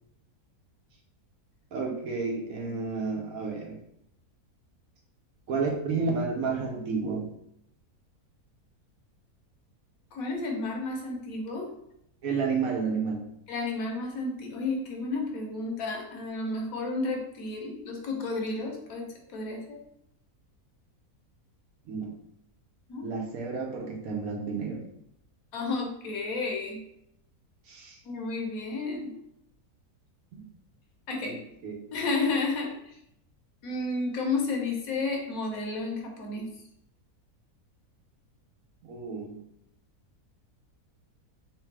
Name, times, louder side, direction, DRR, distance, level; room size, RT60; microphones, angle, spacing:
voice 1, 1.7-3.8 5.5-7.3 12.2-13.2 21.9-22.1 23.0-24.8 27.7-28.0 30.3-30.4 31.3-31.4 31.6-31.8 38.8-39.4, right 4 dB, 70° right, 0 dB, 1.2 m, -31 dB
voice 2, 10.1-11.7 13.5-19.8 22.9-23.1 25.5-26.8 28.0-29.1 31.1-31.4 31.9-33.0 33.6-36.5, left 3 dB, 70° left, 0 dB, 1.2 m, -32 dB
3.5 x 3.3 x 3.2 m, 0.75 s
omnidirectional pair, 1.6 m